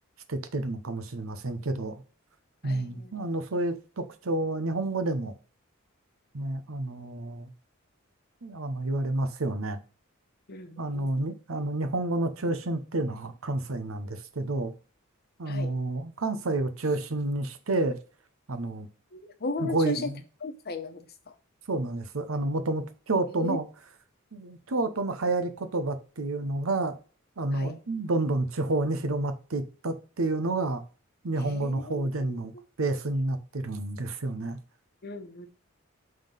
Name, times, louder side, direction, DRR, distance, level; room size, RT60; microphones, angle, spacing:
voice 1, 0.3-2.0 2.6-5.3 6.3-7.5 8.4-9.8 10.8-14.7 15.4-18.0 18.5-18.9 19.6-20.2 21.7-23.6 24.3-27.0 27.4-30.8 31.2-32.5 32.8-34.6, right 2 dB, 75° right, 0.8 m, -29 dB
voice 2, 2.6-3.1 10.5-11.1 15.5-15.8 19.1-20.1 20.4-21.3 23.3-23.6 27.5-27.8 31.4-32.4 35.0-35.5, left 3 dB, 50° left, 1.0 m, -36 dB
5.5 x 3.7 x 5.5 m
head